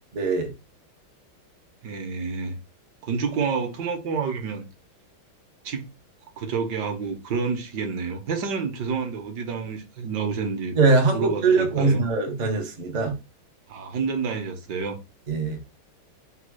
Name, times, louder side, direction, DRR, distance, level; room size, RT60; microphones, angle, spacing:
voice 1, 0.2-0.5 10.7-13.2 15.3-15.6, right 4 dB, 90° right, 0.3 m, -22 dB
voice 2, 1.8-2.6 3.0-4.7 5.6-5.9 6.4-10.8 11.1-12.0 13.7-15.0, right 5 dB, 65° right, 1.3 m, -29 dB
4.1 x 2.3 x 4.6 m
omnidirectional pair, 2.3 m